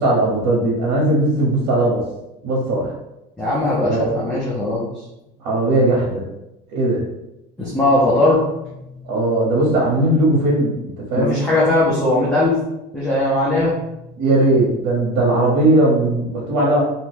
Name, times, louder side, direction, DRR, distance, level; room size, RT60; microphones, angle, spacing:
voice 1, 0.0-2.0 2.4-2.9 3.8-4.1 5.4-6.2 6.7-7.0 9.0-11.3 14.2-16.8, right 1 dB, 75° right, -5 dB, 0.9 m, -18 dB
voice 2, 3.4-4.8 7.6-8.7 9.0-9.1 11.2-12.5 12.9-13.7, left 1 dB, 5° left, -8 dB, 0.5 m, -19 dB
2.8 x 2.2 x 3.3 m, 0.91 s
cardioid pair, 145°, 20 cm